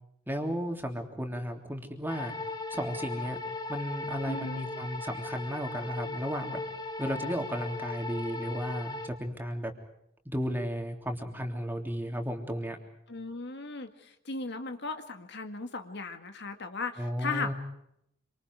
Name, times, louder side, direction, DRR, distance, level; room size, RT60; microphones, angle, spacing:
voice 1, 0.3-2.3 2.7-3.4 3.7-6.6 7.0-9.7 10.3-12.8 17.0-17.5, equal, 10° right, 3 dB, 3.3 m, -34 dB
sound 1, 2.1-9.1, left 3 dB, 20° left, 2.3 m, -38 dB
voice 2, 4.3-4.6 13.1-17.5, left 3 dB, 60° left, 7 dB, 1.9 m, -37 dB
27.0 x 26.0 x 4.8 m, 0.76 s
head